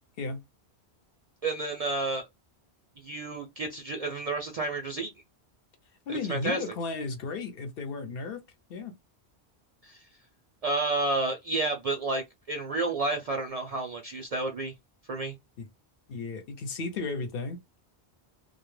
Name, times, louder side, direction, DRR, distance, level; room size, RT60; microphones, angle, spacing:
voice 1, 1.4-2.2 3.0-5.1 6.1-6.6 9.8-10.1 10.6-14.7 15.1-15.3, right 2 dB, 60° right, 0.4 m, -30 dB
voice 2, 6.1-8.4 8.7-8.9 15.6-15.7 16.1-17.6, left 3 dB, 65° left, 0.8 m, -34 dB
2.3 x 2.1 x 3.0 m
omnidirectional pair, 1.1 m